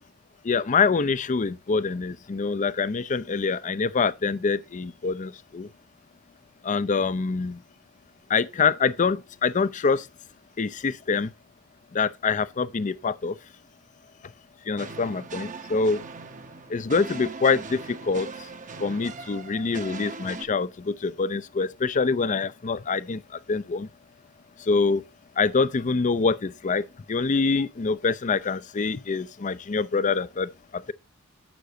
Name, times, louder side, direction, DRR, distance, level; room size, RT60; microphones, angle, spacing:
voice 1, 0.4-5.7 6.6-7.6 8.3-10.1 10.6-11.3 11.9-13.4 14.7-16.0 16.7-18.3 18.8-23.2 23.5-23.9 24.6-25.0 25.4-30.9, left 4 dB, 35° left, 0.5 m, -25 dB
sound 1, 14.8-20.4, right 4 dB, 35° right, 0.8 m, -40 dB
11.5 x 8.0 x 2.7 m
head